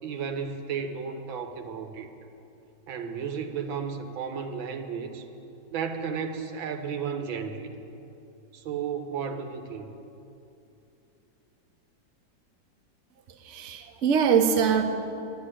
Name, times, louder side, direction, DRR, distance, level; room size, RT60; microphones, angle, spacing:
voice 1, 0.0-2.1 2.9-5.3 5.7-7.7 8.5-10.0, right 6 dB, 85° right, 6 dB, 1.7 m, -33 dB
voice 2, 13.3-14.8, right 7 dB, 50° right, 5 dB, 1.0 m, -23 dB
11.0 x 10.0 x 9.9 m, 2.8 s
omnidirectional pair, 2.1 m